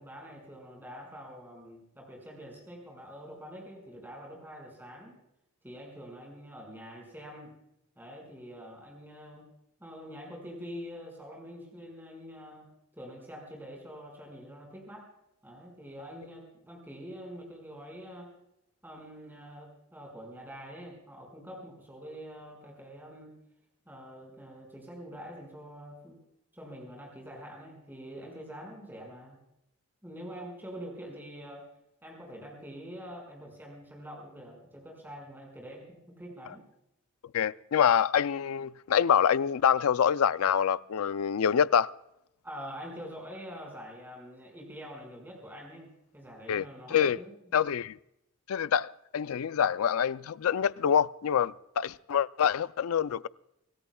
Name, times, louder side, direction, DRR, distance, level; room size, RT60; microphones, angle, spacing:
voice 1, 0.0-5.2 5.6-7.5 8.0-9.4 9.8-15.1 15.4-18.3 18.8-23.3 23.8-26.2 26.5-29.4 30.0-31.7 32.0-36.6 42.4-45.9 46.1-47.4, equal, 10° right, 5.1 m, -45 dB
voice 2, 37.3-41.9 46.5-46.6 46.9-47.2 47.5-48.0 48.5-53.3, left 8 dB, 75° left, 0.4 m, -26 dB
26.0 x 17.5 x 2.3 m
head